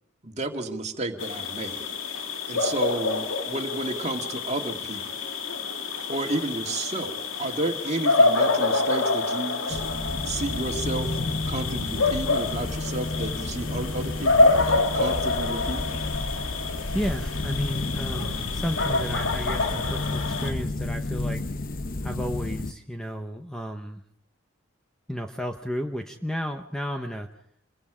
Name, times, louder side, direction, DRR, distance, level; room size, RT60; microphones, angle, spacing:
voice 1, 0.2-1.9 2.5-5.2 6.1-9.8 10.2-11.1 11.5-16.0, right 2 dB, 35° right, 4 dB, 2.2 m, -32 dB
sound 1, 1.2-20.5, left 3 dB, 70° left, 2.4 m, -27 dB
sound 2, 9.7-22.7, left 2 dB, 45° left, 0.9 m, -31 dB
voice 2, 16.9-21.4 22.0-24.0 25.1-27.3, equal, 5° left, 4 dB, 1.0 m, -33 dB
27.5 x 23.0 x 5.1 m, 0.64 s
head